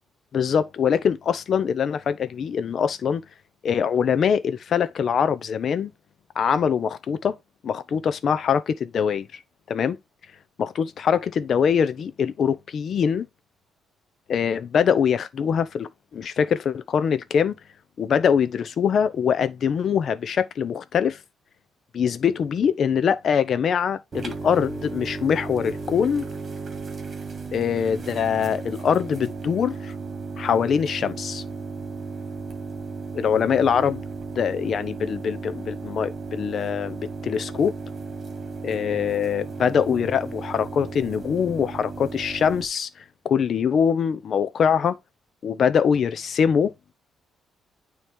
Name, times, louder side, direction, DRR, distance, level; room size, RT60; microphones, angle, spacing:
voice 1, 0.3-3.2 3.6-5.9 6.3-7.4 7.6-9.4 9.7-10.0 10.6-13.3 14.3-17.6 18.0-21.2 21.9-26.3 27.5-29.9 30.4-31.4 33.1-34.0 34.4-37.7 38.6-42.9 43.2-45.0 45.4-46.7, left 7 dB, 55° left, 0.8 m, -23 dB
sound 1, 24.1-42.7, right 4 dB, 40° right, 1.6 m, -35 dB
9.1 x 3.2 x 3.6 m
cardioid pair, 90°, 0 cm